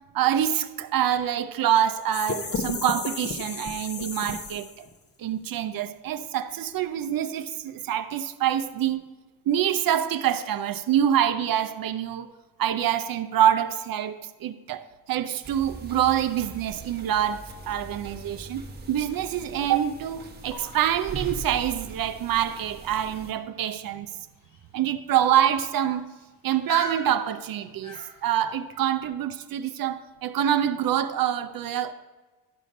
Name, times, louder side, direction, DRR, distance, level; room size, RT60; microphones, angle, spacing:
voice 1, 0.1-4.9 5.2-9.0 9.5-12.3 12.6-24.1 24.7-26.1 26.4-31.9, right 10 dB, 55° right, 0.6 m, -26 dB
sound 1, 2.1-4.9, left 4 dB, 35° left, 0.9 m, -33 dB
sound 2, 15.4-23.3, right 3 dB, 25° right, 1.1 m, -41 dB
sound 3, 20.4-28.5, equal, 70° left, 2.8 m, -43 dB
12.0 x 5.0 x 5.2 m
cardioid pair, 95°, 43 cm